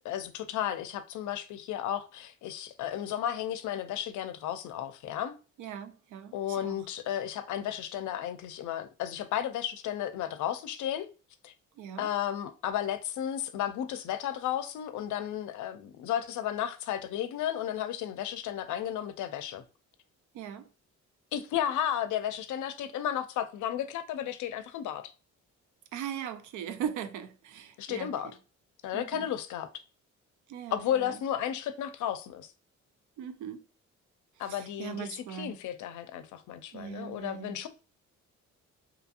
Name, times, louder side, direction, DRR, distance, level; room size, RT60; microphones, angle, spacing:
voice 1, 0.0-5.4 6.3-11.1 11.4-11.5 12.0-19.6 21.3-25.1 27.8-28.3 28.8-29.7 30.7-32.5 34.4-37.7, left 10 dB, 75° left, 0.5 m, -33 dB
voice 2, 5.6-6.8 11.8-12.1 20.3-20.7 25.9-28.3 28.9-29.3 30.5-31.2 33.2-33.6 34.5-35.6 36.7-37.7, right 8 dB, 80° right, 0.5 m, -40 dB
2.8 x 2.7 x 2.4 m
cardioid pair, 90°, 30 cm